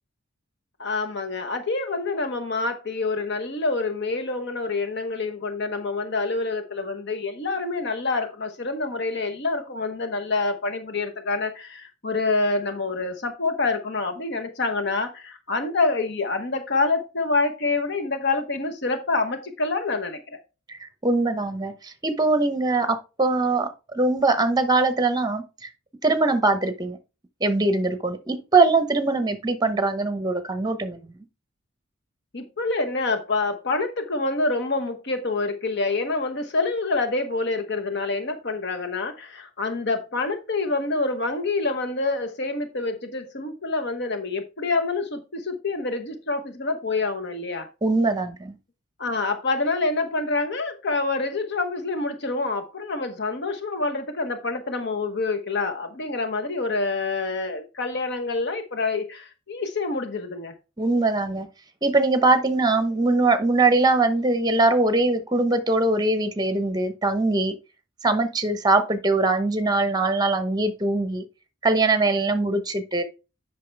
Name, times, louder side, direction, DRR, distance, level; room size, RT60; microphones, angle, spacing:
voice 1, 0.8-20.4 32.3-47.7 49.0-60.5, left 3 dB, 55° left, 1.0 m, -27 dB
voice 2, 20.7-25.7 26.0-27.0 27.4-31.0 47.8-48.6 60.8-61.5 61.8-67.5 68.0-71.2 71.6-73.0, right 3 dB, 20° right, 0.9 m, -22 dB
8.4 x 5.7 x 3.4 m
head